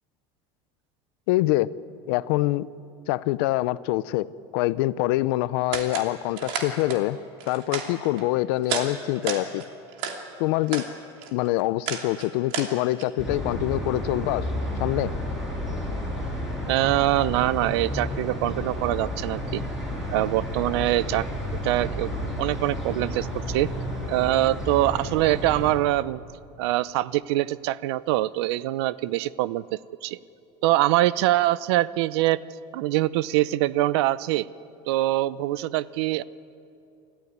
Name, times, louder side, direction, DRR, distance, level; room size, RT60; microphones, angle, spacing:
voice 1, 1.3-1.7 2.1-2.7 3.1-4.3 4.5-7.2 7.5-9.6 10.4-10.9 11.3-14.5 14.8-15.1, left 17 dB, 70° left, 17 dB, 0.6 m, -25 dB
Nerf Reload and Noises, 5.7-6.1 6.4-7.0 7.4-8.3 8.6-8.9 9.2-10.2 10.6-10.9 11.2-13.0, right 7 dB, 60° right, 2.9 m, -32 dB
sound 1, 13.2-25.7, equal, ahead, 5.7 m, -31 dB
voice 2, 16.7-19.6 20.1-21.3 21.6-22.1 22.4-23.7 24.1-26.2 26.6-29.6 30.0-30.2 30.6-32.4 32.7-34.5 34.9-36.2, right 16 dB, 80° right, 18 dB, 0.6 m, -24 dB
28.5 x 14.0 x 9.6 m, 2.6 s
cardioid pair, 175°, 13 cm